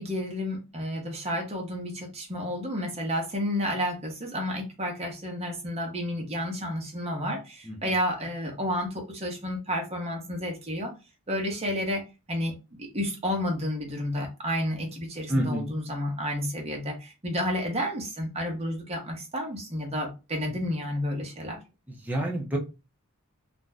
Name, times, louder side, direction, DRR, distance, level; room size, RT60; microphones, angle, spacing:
voice 1, 0.0-10.9 11.3-12.0 12.3-12.5 12.8-21.6, equal, 30° right, 0.9 m, -31 dB
voice 2, 15.3-15.7 22.0-22.6, right 1 dB, 5° right, 0.5 m, -28 dB
2.5 x 2.1 x 3.3 m
head